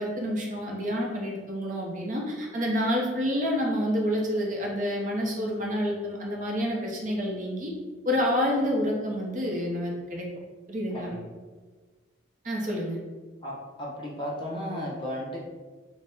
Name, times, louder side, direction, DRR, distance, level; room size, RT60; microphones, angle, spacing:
voice 1, 0.0-7.7 8.0-10.3 10.7-11.1 12.4-13.0, equal, 40° right, -1 dB, 0.6 m, -28 dB
voice 2, 13.4-15.4, equal, 25° left, -4 dB, 0.7 m, -34 dB
4.0 x 2.1 x 3.4 m, 1.3 s
head